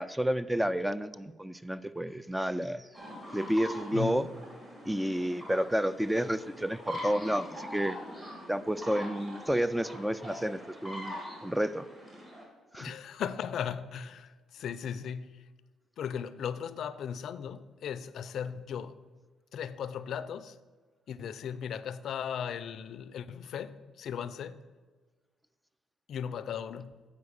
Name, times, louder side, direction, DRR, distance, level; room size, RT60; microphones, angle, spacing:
voice 1, 0.0-2.9 3.3-4.3 4.9-8.0 8.5-11.2 11.4-11.9 12.7-12.9, equal, 5° right, 0.3 m, -30 dB
sound 1, 2.9-12.4, equal, 30° right, 3.0 m, -43 dB
voice 2, 12.8-15.3 16.0-19.0 19.5-20.6 21.1-24.6 26.1-26.9, left 8 dB, 70° left, 0.4 m, -37 dB
8.2 x 5.2 x 6.5 m
cardioid pair, 90°, 0 cm